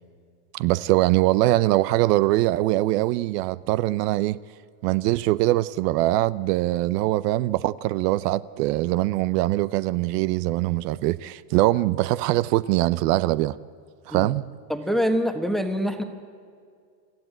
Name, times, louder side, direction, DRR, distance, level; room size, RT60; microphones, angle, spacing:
voice 1, 0.5-4.4 4.8-13.5 14.1-14.4, right 17 dB, 70° right, 0.7 m, -22 dB
voice 2, 14.7-16.0, equal, ahead, 1.2 m, -24 dB
26.5 x 14.5 x 9.1 m
supercardioid pair, 150°, 49 cm